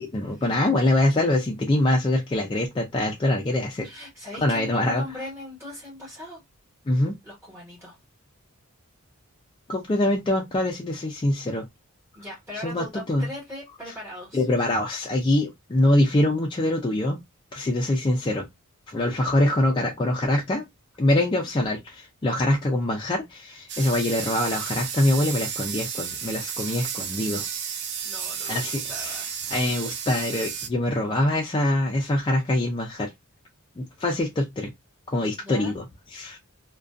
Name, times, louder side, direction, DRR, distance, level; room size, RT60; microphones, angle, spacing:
voice 1, 0.0-3.9 4.4-5.0 6.9-7.2 9.7-11.7 12.6-13.3 14.3-17.2 17.5-18.5 18.9-20.7 21.0-27.5 28.5-29.2 29.5-33.1 33.8-34.7 35.1-35.8 36.1-36.4, left 1 dB, 20° left, 0.3 m, -24 dB
voice 2, 3.8-6.4 7.2-8.0 12.1-14.4 21.2-21.5 26.6-26.8 28.0-29.3 35.4-35.7, left 1 dB, 10° right, 1.1 m, -39 dB
sound 1, 23.7-30.7, right 7 dB, 50° right, 0.5 m, -32 dB
2.4 x 2.2 x 2.3 m
head